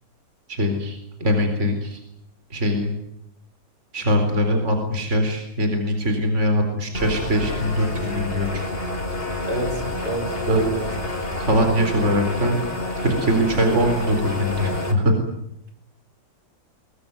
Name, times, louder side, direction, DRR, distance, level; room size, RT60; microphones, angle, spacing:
voice 1, 0.5-2.0 2.5-2.9 3.9-8.6 10.5-10.6 11.4-12.6 13.0-15.1, equal, 35° right, 5 dB, 4.4 m, -22 dB
sound 1, 6.9-14.9, left 1 dB, 30° left, 4.9 m, -28 dB
voice 2, 9.5-10.9, right 2 dB, 60° right, 4 dB, 5.6 m, -27 dB
23.0 x 22.0 x 9.5 m, 0.78 s
omnidirectional pair, 2.1 m